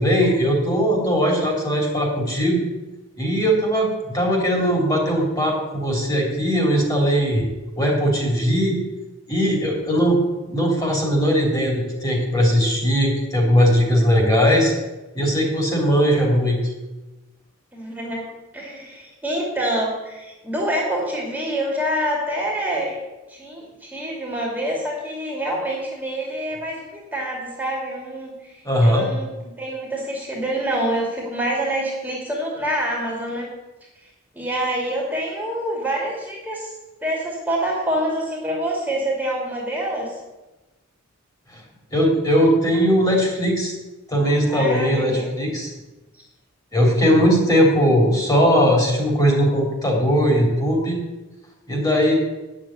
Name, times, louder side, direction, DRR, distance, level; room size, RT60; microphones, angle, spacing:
voice 1, 0.0-2.6 3.2-7.4 7.8-8.8 9.3-10.2 10.5-14.7 15.1-16.6 28.6-29.0 41.5-41.6 41.9-43.7 44.1-45.7 46.7-51.0 51.7-52.1, equal, 20° left, -1 dB, 3.4 m, -19 dB
voice 2, 17.7-23.0 23.3-33.5 34.0-36.7 37.0-40.2 44.5-45.3 46.1-46.2, right 1 dB, 10° right, -3 dB, 2.6 m, -26 dB
9.4 x 7.6 x 9.0 m, 1.1 s
head